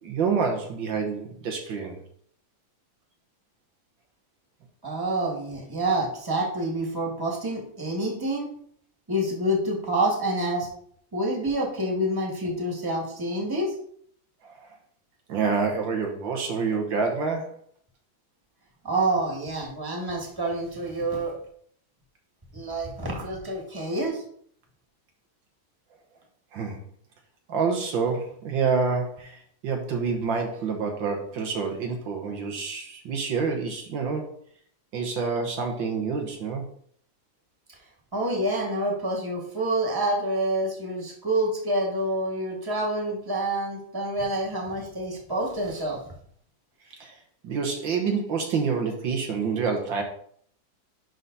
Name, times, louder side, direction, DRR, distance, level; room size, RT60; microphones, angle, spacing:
voice 1, 0.0-2.0 14.4-14.7 15.3-17.6 26.5-26.8 27.5-34.3 34.9-36.7 46.9-47.1 47.4-50.0, right 5 dB, 75° right, 3 dB, 1.8 m, -27 dB
voice 2, 4.8-8.5 9.1-10.7 11.1-13.7 18.8-21.4 22.5-24.2 38.1-46.0, right 1 dB, 10° right, -1 dB, 1.9 m, -27 dB
11.0 x 4.0 x 4.0 m, 0.62 s
omnidirectional pair, 2.1 m